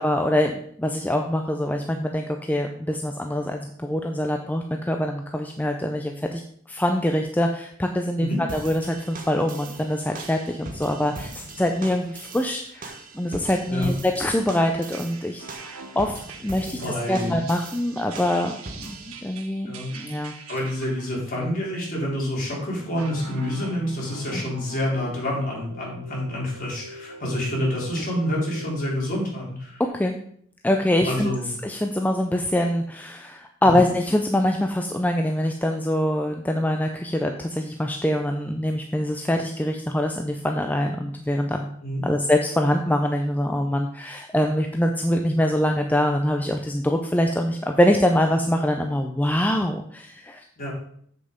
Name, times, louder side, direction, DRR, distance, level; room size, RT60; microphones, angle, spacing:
voice 1, 0.0-6.4 6.7-16.8 17.1-20.3 29.8-30.2 30.6-31.3 31.6-41.7 42.0-50.4, left 1 dB, 10° left, 4 dB, 0.5 m, -24 dB
sound 1, 8.5-19.2, right 2 dB, 40° right, 1.3 m, -41 dB
sound 2, 9.8-9.9 10.2-10.7 11.1-11.3 11.8-12.0 12.5-12.8 13.4-21.4 22.8-28.8, right 3 dB, 85° right, 1.0 m, -42 dB
voice 2, 16.7-17.4 19.7-19.9 20.5-29.8 31.0-31.6 33.6-33.8 41.8-42.0 50.6-50.7, left 1 dB, 40° left, -4 dB, 3.8 m, -28 dB
7.7 x 6.8 x 5.1 m, 0.65 s
head